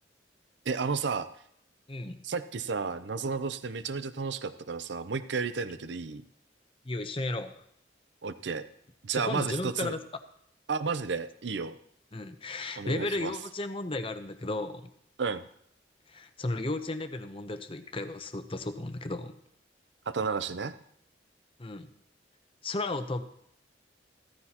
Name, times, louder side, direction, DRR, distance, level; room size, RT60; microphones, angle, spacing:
voice 1, 0.7-1.3 2.2-6.2 8.2-8.7 9.0-9.9 10.7-11.8 12.8-13.3 15.2-15.4 20.1-20.7, right 5 dB, 70° right, 12 dB, 0.6 m, -32 dB
voice 2, 1.9-2.2 6.8-7.6 9.1-10.0 12.1-14.8 16.1-19.3 21.6-21.9 22.6-23.2, left 2 dB, 30° left, 8 dB, 0.8 m, -34 dB
15.5 x 13.5 x 3.0 m, 0.70 s
head